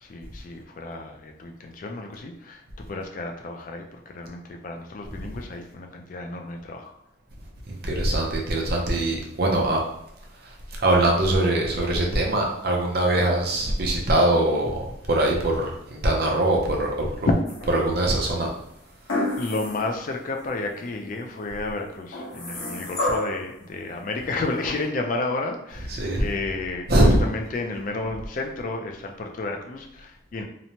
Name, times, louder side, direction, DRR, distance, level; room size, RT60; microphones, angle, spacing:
voice 1, 0.0-6.9 17.3-17.4 19.4-30.4, left 2 dB, 40° left, 3 dB, 0.3 m, -31 dB
voice 2, 7.7-9.8 10.8-17.3 17.7-18.5 25.8-26.3 26.9-27.2, right 1 dB, 50° right, 0 dB, 0.5 m, -22 dB
sound 1, 17.5-18.1 19.1-19.9 20.4-20.5 22.1-23.5 24.6-24.7, left 1 dB, 75° left, 0.9 m, -29 dB
2.9 x 2.1 x 2.7 m, 0.79 s
head